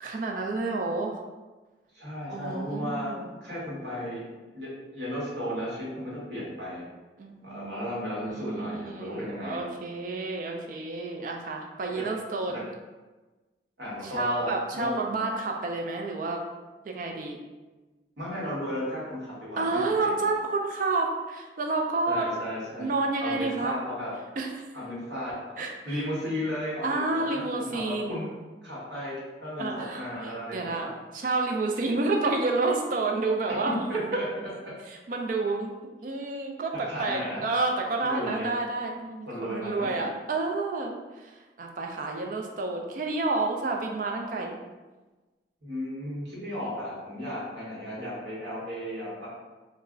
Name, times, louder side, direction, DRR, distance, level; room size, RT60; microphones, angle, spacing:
voice 1, 0.0-1.2 2.3-3.3 7.2-12.5 14.0-16.4 16.8-17.4 19.6-22.3 22.8-23.8 24.4-24.5 25.6-25.9 26.8-28.3 29.6-30.9 31.1-33.9 34.9-35.7 36.0-41.3 41.6-44.6, right 3 dB, 50° right, 2 dB, 0.3 m, -30 dB
voice 2, 1.9-3.1 3.4-4.3 4.5-6.8 7.4-9.7 13.8-14.9 18.2-20.1 22.1-22.9 23.2-24.1 24.7-28.3 28.6-30.9 33.9-34.2 36.7-37.4 38.0-38.5 39.2-40.0 45.6-49.3, equal, 75° right, -7 dB, 1.1 m, -35 dB
2.4 x 2.0 x 3.6 m, 1.2 s
head